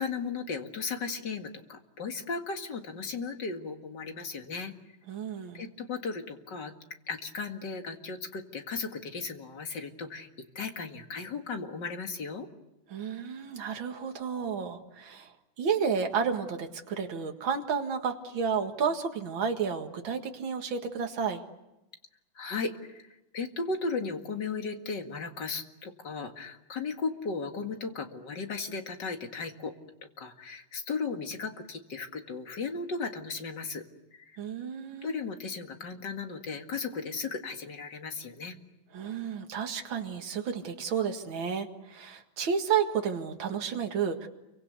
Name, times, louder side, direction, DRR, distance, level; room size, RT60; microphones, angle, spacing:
voice 1, 0.0-4.7 5.5-6.7 7.1-10.3 10.6-12.5 22.4-23.1 23.3-29.7 30.2-33.8 34.1-34.4 35.0-38.6, left 4 dB, 55° left, 5 dB, 2.6 m, -36 dB
voice 2, 5.1-5.6 12.9-15.3 15.6-21.4 34.4-35.1 38.9-44.3, right 6 dB, 70° right, 4 dB, 2.6 m, -31 dB
29.0 x 24.5 x 8.2 m, 0.93 s
omnidirectional pair, 2.3 m